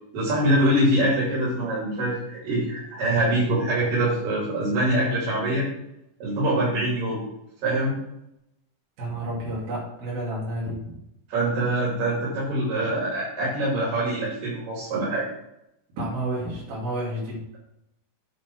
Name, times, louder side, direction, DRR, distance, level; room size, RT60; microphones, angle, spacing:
voice 1, 0.1-5.7 6.2-7.2 7.6-8.0 11.3-15.3, right 1 dB, 70° right, -6 dB, 4.3 m, -24 dB
voice 2, 9.0-11.0 16.0-17.4, right 1 dB, 85° right, -6 dB, 4.6 m, -30 dB
9.1 x 4.8 x 6.1 m, 0.82 s
omnidirectional pair, 4.2 m